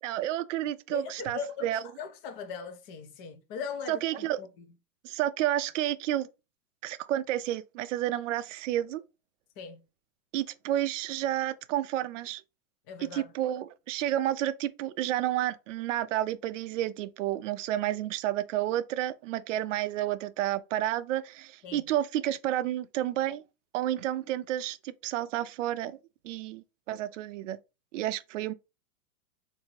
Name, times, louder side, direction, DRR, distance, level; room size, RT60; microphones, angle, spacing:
voice 1, 0.0-1.8 3.9-4.4 5.0-6.3 6.8-9.0 10.3-12.4 13.1-23.4 23.7-26.0 26.2-27.6 27.9-28.5, right 13 dB, 60° right, 0.5 m, -30 dB
voice 2, 0.9-4.7 9.6-9.8 12.9-13.3 21.6-21.8, left 6 dB, 30° left, 0.6 m, -40 dB
3.6 x 2.7 x 3.0 m
hypercardioid pair, 140°, 44 cm